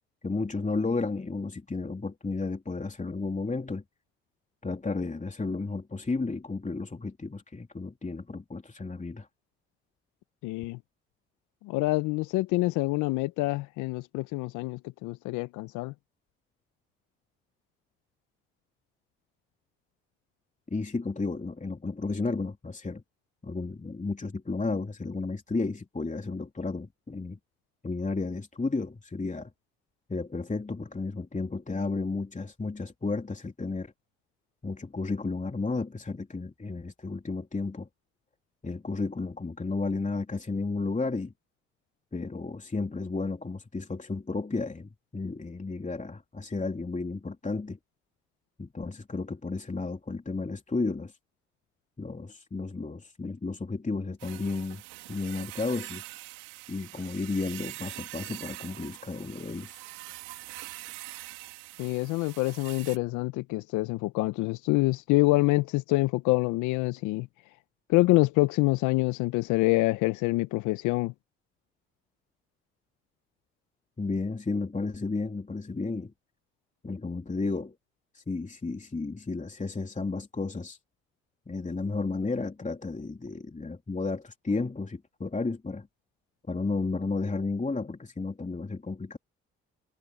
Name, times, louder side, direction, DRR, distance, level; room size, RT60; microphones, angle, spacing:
voice 1, 0.2-3.8 4.6-9.3 20.7-23.0 23.4-27.4 27.8-29.5 30.1-33.9 34.6-37.9 38.6-41.3 42.1-47.8 48.6-51.1 52.0-54.8 55.1-56.0 56.7-59.8 74.0-76.1 76.8-77.7 78.1-80.8 81.5-85.9 86.5-89.2, left 3 dB, 25° left, 3.2 m, -33 dB
voice 2, 10.4-10.8 11.6-15.9 61.8-67.3 67.9-71.1, left 21 dB, 80° left, 0.9 m, -26 dB
sound 1, 54.2-63.0, right 22 dB, 85° right, 2.4 m, -44 dB
hypercardioid pair, 50°, 30 cm